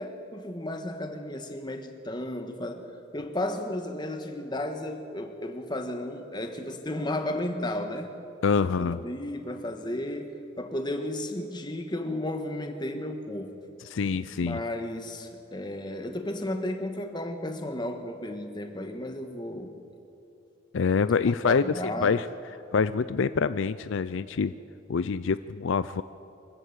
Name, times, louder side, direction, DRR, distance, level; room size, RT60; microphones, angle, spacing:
voice 1, 0.0-8.1 8.6-10.3 10.6-13.5 14.3-19.7 21.4-22.1, left 1 dB, 20° left, 5 dB, 1.5 m, -33 dB
voice 2, 8.4-9.0 13.9-14.6 20.7-22.3 22.7-24.5 24.9-26.0, left 5 dB, 65° left, 14 dB, 0.4 m, -26 dB
24.5 x 14.5 x 8.2 m, 2.8 s
head